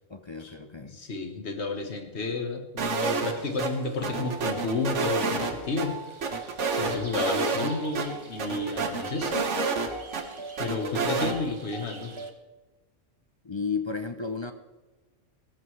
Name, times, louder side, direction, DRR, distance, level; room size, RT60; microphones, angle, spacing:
voice 1, 0.1-1.0 13.4-14.5, left 5 dB, 35° left, 8 dB, 0.4 m, -33 dB
voice 2, 0.8-6.0 6.8-9.5 10.6-12.1, left 3 dB, 65° left, 5 dB, 1.7 m, -31 dB
sound 1, 2.8-3.3 3.6-3.7 4.0-5.9 6.2-7.7 7.9-8.1 8.4-10.2 10.6-11.3, right 4 dB, 75° right, 1.6 m, -28 dB
sound 2, 3.3-12.3, right 2 dB, 25° right, 0.9 m, -42 dB
18.5 x 14.0 x 3.2 m, 1.2 s
omnidirectional pair, 1.3 m